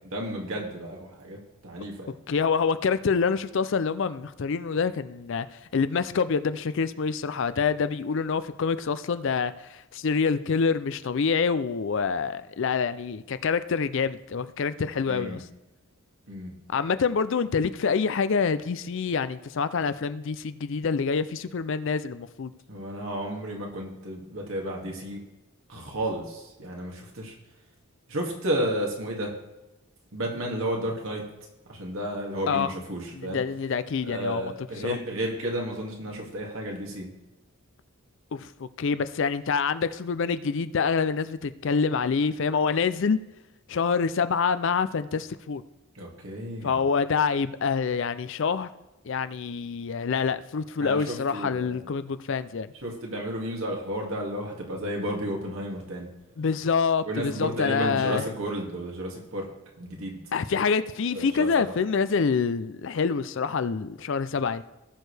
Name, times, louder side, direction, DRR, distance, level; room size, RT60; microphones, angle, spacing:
voice 1, 0.1-2.1 15.1-15.4 16.3-16.5 22.7-25.2 25.7-27.3 28.1-29.3 30.1-31.2 31.7-33.4 34.0-37.1 45.9-46.8 50.8-51.8 52.8-56.1 57.0-59.5 59.8-60.2 61.1-61.7, right 1 dB, 65° right, -1 dB, 2.2 m, -32 dB
voice 2, 2.3-5.5 5.7-15.4 16.7-22.5 32.5-32.7 33.1-34.5 34.8-35.0 38.3-43.2 43.7-45.6 46.6-48.7 49.1-52.7 56.4-58.2 60.3-64.6, left 5 dB, 55° left, 13 dB, 0.4 m, -26 dB
18.0 x 6.4 x 3.4 m, 1.0 s
head